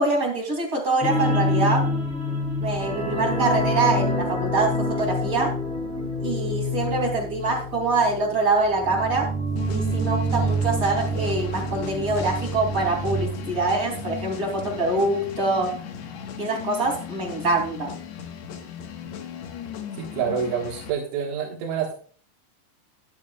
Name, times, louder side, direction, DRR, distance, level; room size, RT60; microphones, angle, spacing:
voice 1, 0.0-1.9 2.6-5.5 6.2-9.3 9.7-15.7 16.4-17.9, right 3 dB, 25° right, 2 dB, 2.5 m, -24 dB
sound 1, 1.0-14.3 14.6-14.8 15.1-15.2, equal, ahead, 3.1 m, -27 dB
sound 2, 9.5-20.9, left 8 dB, 75° left, 3.3 m, -37 dB
voice 2, 20.0-21.9, right 7 dB, 85° right, -2 dB, 4.0 m, -27 dB
14.0 x 11.5 x 2.4 m, 0.44 s
omnidirectional pair, 5.2 m